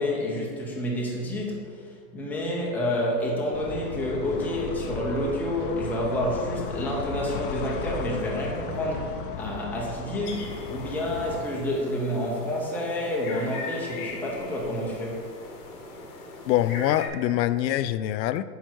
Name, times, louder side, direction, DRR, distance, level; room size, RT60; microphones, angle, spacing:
voice 1, 0.0-1.8 2.1-15.2, left 1 dB, 5° left, -4 dB, 0.8 m, -29 dB
sound 1, 3.5-11.4, left 4 dB, 35° left, 0.4 m, -36 dB
sound 2, 10.2-17.1, left 3 dB, 60° left, 2.1 m, -40 dB
voice 2, 16.5-18.4, left 13 dB, 85° left, 14 dB, 0.5 m, -24 dB
9.4 x 5.4 x 4.6 m, 2.1 s
supercardioid pair, 160°, 49 cm